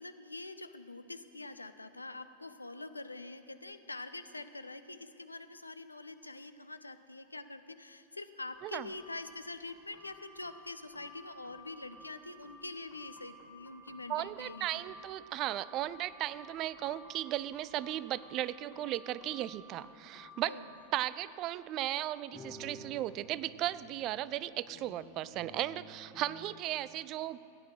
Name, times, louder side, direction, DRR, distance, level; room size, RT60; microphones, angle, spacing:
voice 1, 0.0-14.8 20.4-20.7, left 2 dB, 80° left, 10 dB, 0.5 m, -45 dB
sound 1, 8.5-21.3 22.0-22.1 22.3-26.6, equal, 15° left, 1.6 m, -54 dB
voice 2, 14.1-20.5 20.9-27.4, right 14 dB, 35° right, 17 dB, 0.4 m, -36 dB
14.0 x 9.6 x 6.2 m, 2.7 s
figure-of-eight pair, 90°, 0 cm